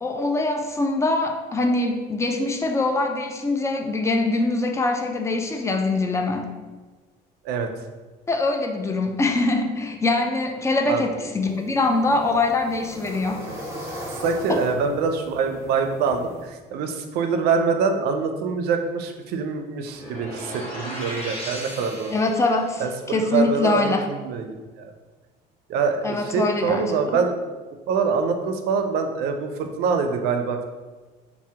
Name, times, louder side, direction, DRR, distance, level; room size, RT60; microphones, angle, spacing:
voice 1, 0.0-6.5 8.3-13.4 14.5-14.6 22.1-24.1 26.0-26.8, left 2 dB, 15° left, 4 dB, 0.3 m, -23 dB
sound 1, 11.4-16.4, equal, 15° right, 0.8 m, -38 dB
voice 2, 13.9-22.1 22.8-24.9 25.7-27.3 27.9-30.7, right 5 dB, 70° right, 6 dB, 0.4 m, -25 dB
sound 2, 19.9-22.7, equal, 35° left, 1.2 m, -36 dB
2.7 x 2.1 x 3.3 m, 1.3 s
cardioid pair, 105°, 17 cm